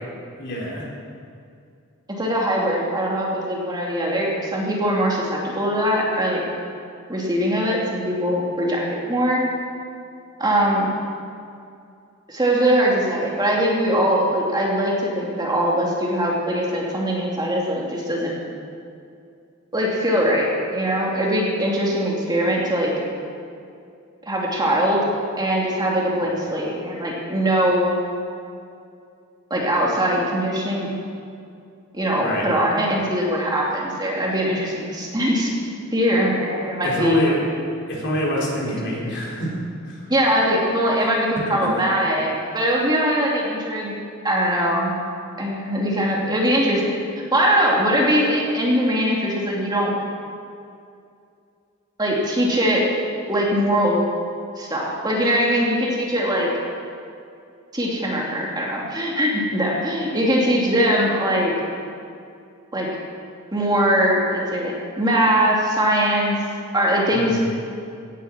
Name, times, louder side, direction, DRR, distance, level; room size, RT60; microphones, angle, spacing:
voice 1, 0.4-0.9 32.2-32.5 36.8-37.4 37.9-39.6 39.8-40.1 41.5-41.8 42.4-42.6 67.1-67.4, equal, 55° left, -3 dB, 3.9 m, -26 dB
voice 2, 2.2-6.4 7.1-8.8 9.1-9.4 10.4-10.9 12.3-18.3 19.7-22.9 24.3-25.0 25.4-27.9 29.5-30.9 31.9-35.5 35.9-37.2 38.7-39.2 40.1-43.9 44.2-44.9 45.4-46.9 47.3-49.9 52.0-52.9 53.3-54.0 54.6-56.5 57.7-61.5 62.7-62.9 63.5-66.4 66.7-67.5, equal, 20° right, -3 dB, 2.5 m, -21 dB
17.0 x 9.3 x 7.3 m, 2.5 s
head